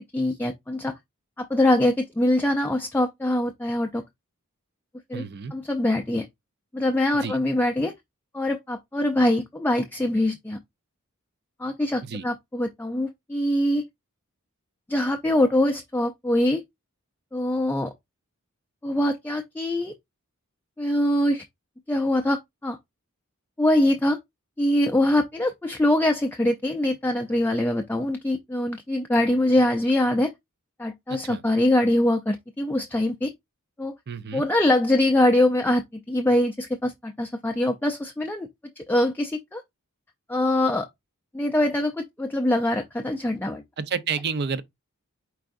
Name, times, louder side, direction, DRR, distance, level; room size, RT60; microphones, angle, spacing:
voice 1, 0.1-0.9 1.4-4.0 5.1-5.2 5.5-6.3 6.7-7.9 8.3-10.6 11.6-13.8 14.9-16.6 17.3-17.9 18.8-19.9 20.8-21.4 21.9-22.8 23.6-24.2 24.6-30.3 30.8-33.3 33.8-34.0 34.3-38.5 38.8-39.6 40.3-40.9 41.3-43.6, left 1 dB, 10° left, 0.4 m, -23 dB
voice 2, 5.1-5.5 7.1-7.4 12.0-12.3 31.1-31.4 34.1-34.4 43.8-44.6, right 5 dB, 50° right, 0.5 m, -30 dB
4.7 x 4.3 x 2.5 m
head